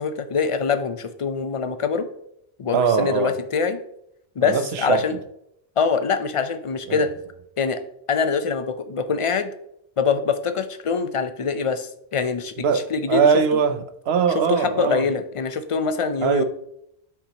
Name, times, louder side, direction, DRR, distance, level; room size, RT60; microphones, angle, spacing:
voice 1, 0.0-2.1 2.6-3.8 4.4-5.1 5.8-7.1 7.6-7.8 8.1-9.5 10.0-13.2 14.3-16.4, left 5 dB, 40° left, 0.5 m, -24 dB
voice 2, 2.7-3.3 4.4-5.0 6.9-7.0 12.6-15.0 16.2-16.4, right 6 dB, 80° right, 0.9 m, -21 dB
8.2 x 5.8 x 2.8 m
omnidirectional pair, 1.0 m